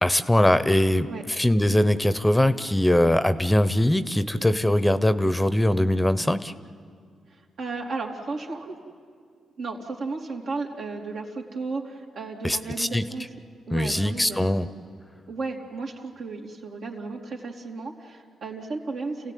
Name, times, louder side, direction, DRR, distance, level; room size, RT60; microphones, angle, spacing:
voice 1, 0.0-6.5 12.4-13.1 13.7-14.7, left 1 dB, 10° left, 13 dB, 0.8 m, -21 dB
voice 2, 7.3-8.8 9.6-13.3 13.7-14.6 15.3-19.3, right 3 dB, 75° right, -1 dB, 3.1 m, -34 dB
29.0 x 16.5 x 9.4 m, 2.2 s
cardioid pair, 65°, 0 cm